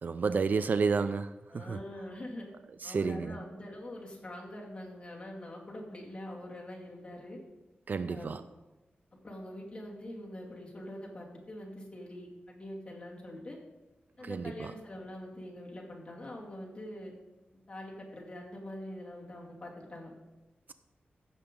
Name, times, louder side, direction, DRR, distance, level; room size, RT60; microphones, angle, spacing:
voice 1, 0.0-1.3 1.7-1.8 2.8-3.3 7.9-8.4 14.2-14.7, right 5 dB, 55° right, 0.3 m, -30 dB
voice 2, 1.5-2.5 2.8-7.4 8.1-8.4 9.2-13.6 14.2-17.1 17.7-20.1, left 1 dB, 30° left, 2.4 m, -44 dB
15.5 x 6.9 x 3.8 m
wide cardioid pair, 140°, 4 cm